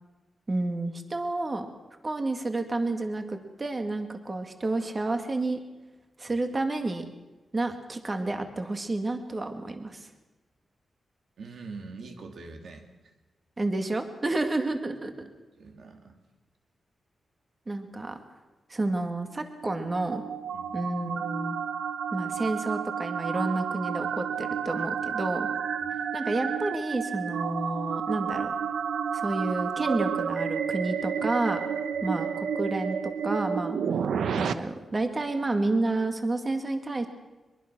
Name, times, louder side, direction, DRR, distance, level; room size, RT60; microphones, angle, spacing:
voice 1, 0.5-1.7 2.0-5.6 6.2-7.1 7.5-10.1 13.6-15.1 17.7-18.2 18.7-20.2 20.7-21.6 22.1-25.5 26.1-28.5 29.1-31.6 32.0-33.8 34.4-37.1, right 2 dB, 25° right, 6 dB, 2.1 m, -30 dB
voice 2, 11.4-12.9 15.2-15.3 15.5-16.2 20.5-20.8 25.8-26.0 32.1-32.2, right 4 dB, 70° right, 4 dB, 3.1 m, -44 dB
sound 1, 19.5-34.5, right 7 dB, 90° right, 1.0 m, -31 dB
23.0 x 22.0 x 6.2 m, 1.1 s
wide cardioid pair, 140°, 0 cm